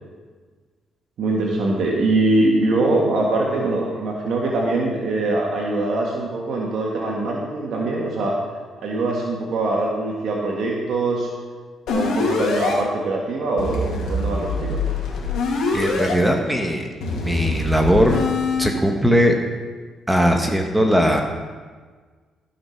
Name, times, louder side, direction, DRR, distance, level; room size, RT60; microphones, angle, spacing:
voice 1, 1.2-8.3 8.8-11.3 11.9-14.8, right 2 dB, 70° right, -2 dB, 1.8 m, -22 dB
sound 1, 11.9-12.7 13.6-16.1 17.0-18.7, left 3 dB, 80° left, 2.6 m, -24 dB
voice 2, 15.7-16.9 17.2-18.2 18.6-19.3 20.1-21.2, equal, 5° right, 3 dB, 1.3 m, -19 dB
14.5 x 5.9 x 5.9 m, 1.5 s
cardioid pair, 90°, 0 cm